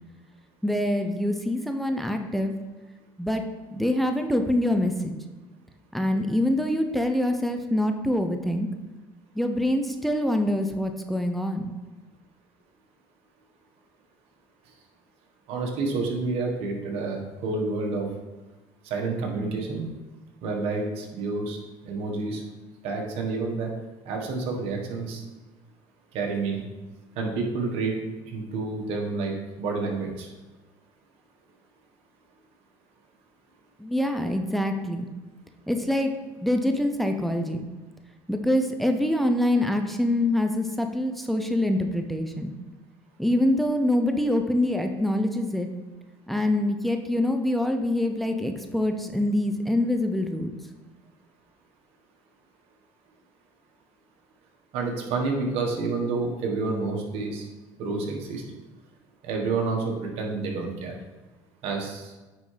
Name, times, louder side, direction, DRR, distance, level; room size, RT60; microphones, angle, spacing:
voice 1, 0.6-2.5 3.2-3.4 3.7-5.1 5.9-8.7 9.4-11.7 33.8-35.1 35.7-36.1 36.4-37.7 38.3-42.5 43.2-45.7 46.3-50.5, left 1 dB, ahead, 5 dB, 0.6 m, -25 dB
voice 2, 15.5-18.1 18.8-19.9 20.4-21.6 21.8-22.4 22.8-23.7 24.0-25.2 26.1-26.7 27.1-30.3 54.7-57.5 57.8-58.4 59.2-60.9 61.6-62.1, right 3 dB, 70° right, 1 dB, 1.3 m, -29 dB
9.2 x 3.7 x 3.3 m, 1.2 s
supercardioid pair, 95°, 10 cm